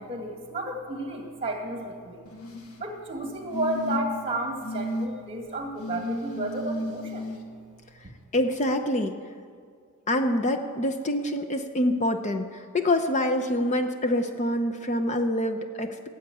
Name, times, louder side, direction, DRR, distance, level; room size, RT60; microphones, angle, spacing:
voice 1, 0.0-2.2 2.8-7.3, right 2 dB, 25° right, 3 dB, 2.0 m, -32 dB
sound 1, 2.3-2.8 3.5-4.2 4.6-5.1 5.8-7.4 8.6-8.7, left 1 dB, 80° left, 1.5 m, -33 dB
voice 2, 8.3-9.1 10.1-16.1, left 1 dB, 30° left, 7 dB, 0.6 m, -26 dB
16.0 x 7.9 x 9.1 m, 2.1 s
head